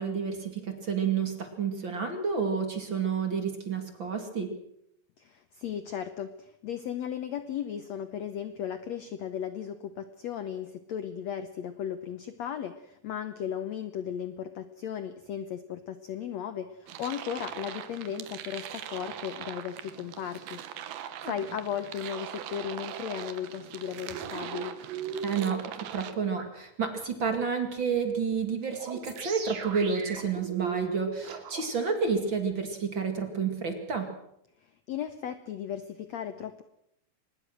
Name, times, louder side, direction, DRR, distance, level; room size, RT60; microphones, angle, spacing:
voice 1, 0.0-4.5 21.2-21.3 25.2-34.1, right 5 dB, 35° right, 5 dB, 2.5 m, -30 dB
voice 2, 5.2-24.7 34.6-36.6, left 9 dB, 70° left, 10 dB, 1.7 m, -36 dB
sound 1, 16.9-26.1, right 10 dB, 85° right, 3.2 m, -41 dB
sound 2, 24.1-25.5 26.4-26.5 28.7-31.6, right 7 dB, 70° right, 4.4 m, -37 dB
24.5 x 20.0 x 6.3 m, 0.76 s
omnidirectional pair, 4.2 m